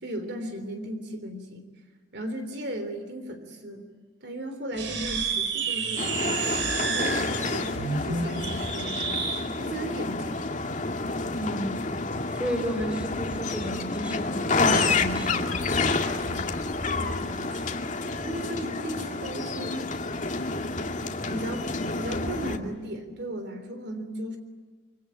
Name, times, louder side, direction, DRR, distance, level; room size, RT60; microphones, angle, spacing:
voice 1, 0.0-1.7 2.1-3.9 4.2-6.5 6.9-9.1 9.5-10.4 16.2-16.4 16.9-17.9 18.2-19.9 21.3-24.4, equal, 60° right, 7 dB, 3.4 m, -36 dB
sound 1, 4.7-9.4, right 5 dB, 85° right, 5.7 m, -30 dB
sound 2, 6.0-22.6, left 3 dB, 40° left, 2.2 m, -29 dB
voice 2, 11.3-11.8 12.3-15.6, equal, 5° right, 4 dB, 5.1 m, -32 dB
26.5 x 25.0 x 9.0 m, 1.4 s
head